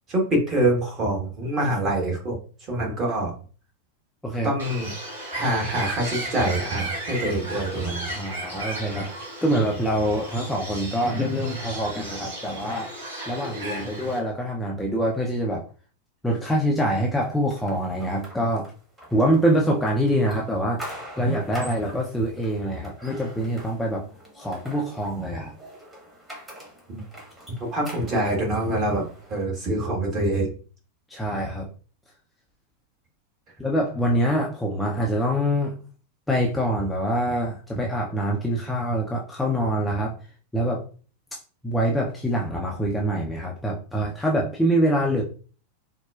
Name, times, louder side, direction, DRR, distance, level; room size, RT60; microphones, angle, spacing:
voice 1, 0.1-3.3 4.4-4.9 5.3-8.2 26.9-27.0 27.6-30.5, right 1 dB, 30° right, 0 dB, 1.2 m, -25 dB
Bird, 4.6-14.2, right 1 dB, 65° right, 1.4 m, -35 dB
voice 2, 8.1-9.1 9.4-12.9 13.3-15.6 16.2-18.7 19.1-20.8 21.2-24.0 24.4-25.5 31.1-31.7 33.6-35.8 36.3-40.1 40.5-40.8 41.6-45.2, equal, 5° left, -1 dB, 0.5 m, -25 dB
sound 1, 17.2-29.4, equal, 15° right, 1.2 m, -44 dB
4.1 x 2.2 x 2.3 m, 0.38 s
figure-of-eight pair, 90°, 0 cm